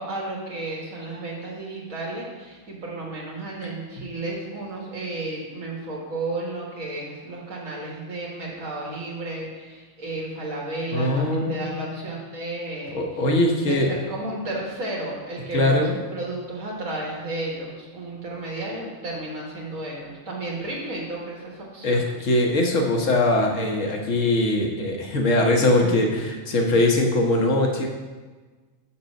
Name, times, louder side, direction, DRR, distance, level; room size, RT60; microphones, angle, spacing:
voice 1, 0.0-13.2 13.6-22.0, right 2 dB, 85° right, -3 dB, 2.0 m, -33 dB
voice 2, 10.9-12.0 12.9-13.9 15.5-15.9 21.8-27.9, left 1 dB, 75° left, 2 dB, 1.4 m, -21 dB
6.0 x 5.3 x 6.4 m, 1.3 s
omnidirectional pair, 1.3 m